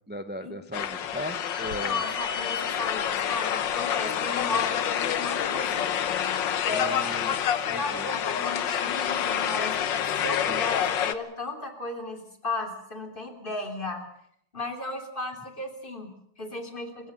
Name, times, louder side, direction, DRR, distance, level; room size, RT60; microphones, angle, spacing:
voice 1, 0.1-2.0 6.7-7.3 7.7-8.1 10.5-10.6, equal, 10° right, 9 dB, 0.6 m, -37 dB
sound 1, 0.7-11.1, left 9 dB, 60° left, 1.7 m, -28 dB
voice 2, 1.6-5.9 6.6-9.9 10.2-14.0 14.5-17.1, left 3 dB, 25° left, 5 dB, 3.4 m, -35 dB
27.0 x 15.5 x 8.0 m, 0.69 s
omnidirectional pair, 2.4 m